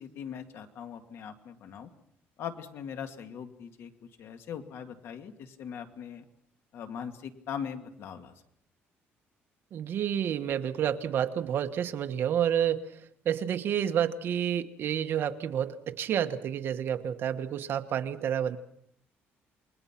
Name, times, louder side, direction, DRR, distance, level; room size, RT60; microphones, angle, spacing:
voice 1, 0.0-1.9 2.4-6.2 6.7-8.3, left 8 dB, 60° left, 7 dB, 2.2 m, -40 dB
voice 2, 9.7-18.6, right 9 dB, 55° right, 8 dB, 1.3 m, -29 dB
29.0 x 21.5 x 5.9 m, 0.72 s
cardioid pair, 145°, 5 cm